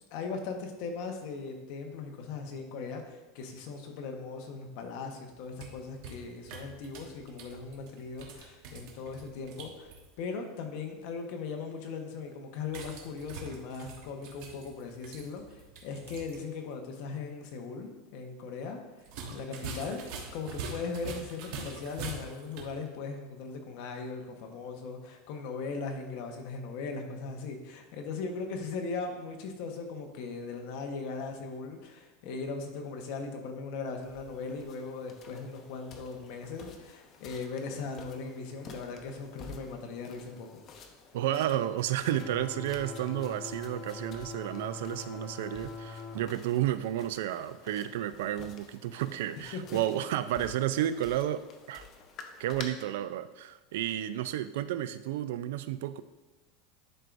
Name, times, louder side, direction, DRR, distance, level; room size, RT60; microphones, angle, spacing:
voice 1, 0.1-9.9 10.2-20.0 20.3-40.6 49.5-49.8, left 4 dB, 55° left, 3 dB, 1.1 m, -39 dB
sound 1, 5.3-10.1 12.7-16.4 16.7-16.8 19.0-22.8, right 4 dB, 55° right, 1.1 m, -44 dB
sound 2, 34.0-52.6, left 5 dB, 35° left, 0.7 m, -52 dB
voice 2, 41.1-51.4 51.7-51.9 52.4-56.0, right 12 dB, 80° right, 14 dB, 0.3 m, -32 dB
sound 3, 42.0-46.2, left 4 dB, 5° left, 1.3 m, -43 dB
11.0 x 4.6 x 2.6 m, 1.2 s
supercardioid pair, 160°, 0 cm